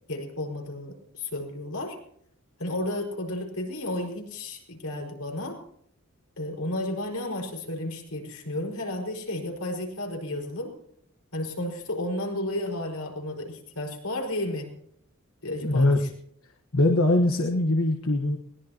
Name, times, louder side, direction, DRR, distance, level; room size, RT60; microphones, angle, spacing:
voice 1, 0.1-2.0 2.6-5.6 6.4-10.7 11.3-14.7 15.4-15.9, left 1 dB, 90° left, 1 dB, 5.1 m, -32 dB
voice 2, 15.6-16.0 16.7-18.4, left 2 dB, 70° left, 3 dB, 1.4 m, -22 dB
21.5 x 19.5 x 2.9 m, 0.69 s
head